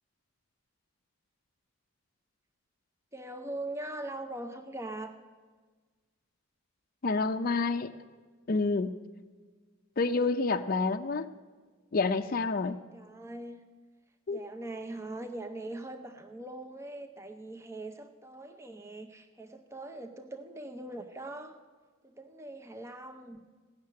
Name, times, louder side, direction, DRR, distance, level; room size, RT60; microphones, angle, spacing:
voice 1, 3.1-5.2 12.9-13.6 14.3-21.6 22.0-23.4, right 2 dB, 15° right, 6 dB, 0.6 m, -41 dB
voice 2, 7.0-7.9 8.5-8.9 10.0-11.3 11.9-12.8 14.3-14.4, left 3 dB, 40° left, 7 dB, 0.5 m, -28 dB
17.0 x 6.6 x 9.4 m, 1.4 s
head